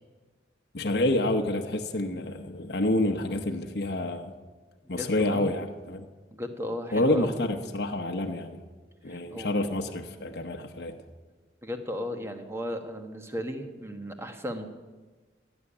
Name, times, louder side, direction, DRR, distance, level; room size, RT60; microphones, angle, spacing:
voice 1, 0.7-4.3 4.9-6.1 6.9-8.6 9.0-11.0, left 1 dB, 60° left, 4 dB, 0.9 m, -28 dB
voice 2, 5.0-5.5 6.3-7.4 9.1-9.8 11.6-14.6, left 1 dB, 15° right, 6 dB, 1.2 m, -35 dB
15.0 x 7.2 x 9.9 m, 1.3 s
head